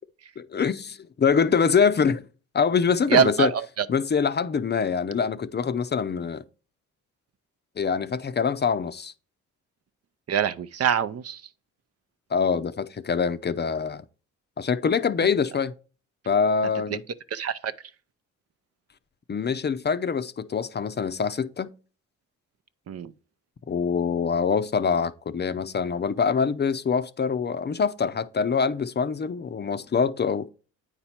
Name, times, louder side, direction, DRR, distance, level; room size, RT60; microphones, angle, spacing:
voice 1, 0.4-2.2 2.5-3.5 3.9-6.4 7.8-9.1 12.3-14.0 14.6-15.7 16.3-17.0 19.3-21.7 23.7-30.5, left 6 dB, 35° left, 0.6 m, -24 dB
voice 2, 3.1-3.9 10.3-11.4 17.3-17.7 22.9-23.1, right 7 dB, 50° right, 0.6 m, -24 dB
8.8 x 4.3 x 4.3 m
cardioid pair, 70°, 32 cm